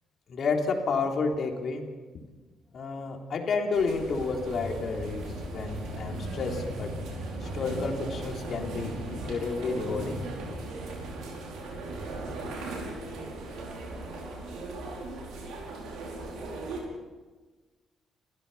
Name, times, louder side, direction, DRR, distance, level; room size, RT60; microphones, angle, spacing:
voice 1, 0.3-1.9 2.7-7.0 7.4-10.2, left 4 dB, 55° left, 2 dB, 3.7 m, -30 dB
sound 1, 3.7-16.8, right 2 dB, 85° right, 5.4 m, -37 dB
30.0 x 15.5 x 5.8 m, 1.3 s
cardioid pair, 90°, 0 cm